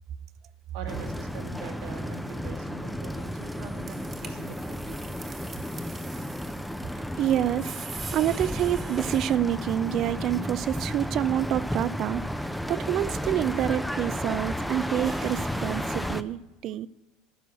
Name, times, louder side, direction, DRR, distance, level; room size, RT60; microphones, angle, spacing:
voice 1, 0.7-5.3, right 5 dB, 75° right, 3 dB, 1.8 m, -43 dB
sound 1, 0.9-16.2, equal, 5° left, 0.5 m, -33 dB
sound 2, 3.1-16.1, right 5 dB, 30° right, 1.4 m, -47 dB
voice 2, 6.9-16.9, right 11 dB, 50° right, 19 dB, 0.4 m, -28 dB
12.5 x 4.6 x 8.0 m, 1.1 s
supercardioid pair, 105°, 0 cm